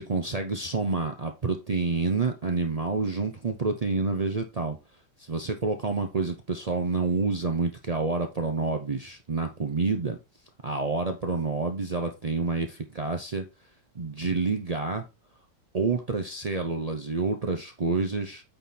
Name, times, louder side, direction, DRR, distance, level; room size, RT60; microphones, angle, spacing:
voice 1, 0.0-4.8 5.3-10.2 10.6-13.5 13.9-15.0 15.7-18.4, right 4 dB, 80° right, 0.3 m, -28 dB
8.9 x 3.9 x 4.2 m
omnidirectional pair, 1.9 m